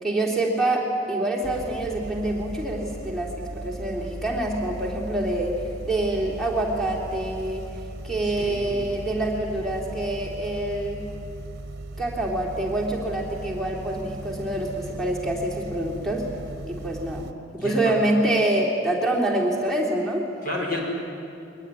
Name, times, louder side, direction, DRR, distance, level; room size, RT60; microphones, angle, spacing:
voice 1, 0.0-5.5 5.8-7.7 8.0-11.0 12.0-16.3 16.7-20.2, right 1 dB, ahead, -5 dB, 3.4 m, -26 dB
sound 1, 1.4-17.3, right 2 dB, 55° right, 1.0 m, -37 dB
voice 2, 8.2-8.7 17.6-17.9 20.4-20.8, left 1 dB, 50° left, -1 dB, 6.0 m, -30 dB
23.0 x 19.5 x 9.9 m, 2.6 s
head